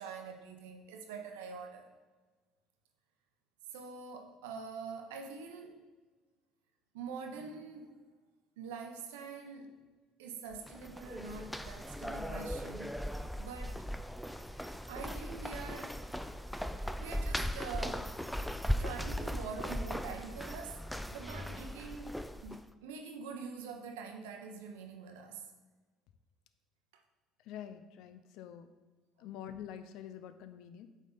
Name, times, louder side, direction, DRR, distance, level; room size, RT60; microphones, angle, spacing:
voice 1, 0.0-1.9 3.7-5.8 6.9-8.0 8.6-9.7 10.2-13.0 13.4-13.9 14.9-16.0 16.7-18.2 18.8-25.6 26.9-27.0, right 5 dB, 85° right, 4 dB, 0.8 m, -45 dB
sound 1, 10.5-22.7, equal, 5° left, 0.4 m, -38 dB
voice 2, 27.4-28.7 29.2-30.9, left 9 dB, 70° left, 10 dB, 0.5 m, -46 dB
8.1 x 3.7 x 4.0 m, 1.4 s
hypercardioid pair, 70°, 0 cm